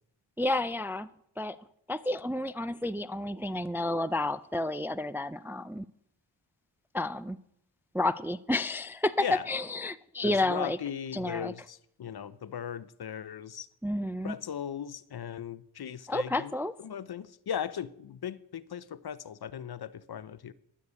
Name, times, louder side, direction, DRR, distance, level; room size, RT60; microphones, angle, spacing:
voice 1, 0.4-1.1 1.4-1.6 1.9-5.9 6.9-7.4 7.9-10.8 11.1-11.5 13.8-14.3 16.1-16.7, left 2 dB, 5° right, 0.4 m, -30 dB
voice 2, 10.2-13.7 14.2-16.5 16.8-20.5, left 9 dB, 55° left, 0.8 m, -38 dB
12.0 x 6.7 x 8.1 m
cardioid pair, 55°, 47 cm